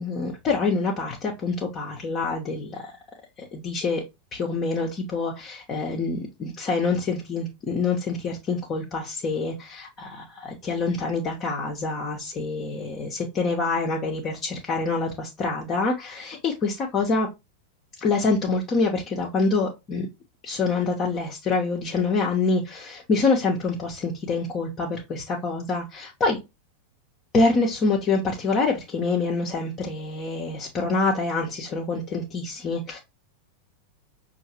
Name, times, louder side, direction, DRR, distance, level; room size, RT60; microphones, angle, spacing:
voice 1, 0.0-2.9 3.4-4.0 4.3-17.3 18.0-20.1 20.4-26.4 27.3-33.0, left 3 dB, 30° left, 0.8 m, -26 dB
5.5 x 2.6 x 2.8 m
figure-of-eight pair, 90°, 0 cm